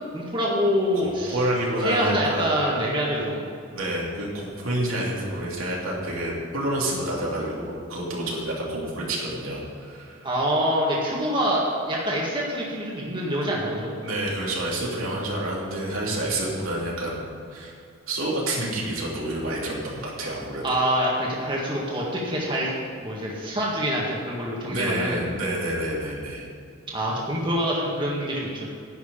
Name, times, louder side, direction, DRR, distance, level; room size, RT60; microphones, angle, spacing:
voice 1, 0.1-1.4 1.8-3.4 10.2-14.0 20.6-22.7 23.0-25.2 26.9-28.7, equal, 25° right, -4 dB, 1.8 m, -25 dB
voice 2, 1.0-2.5 3.7-10.2 14.0-17.7 18.1-20.7 24.7-26.4, right 1 dB, 80° right, -4 dB, 2.9 m, -28 dB
11.0 x 6.1 x 8.8 m, 2.4 s
head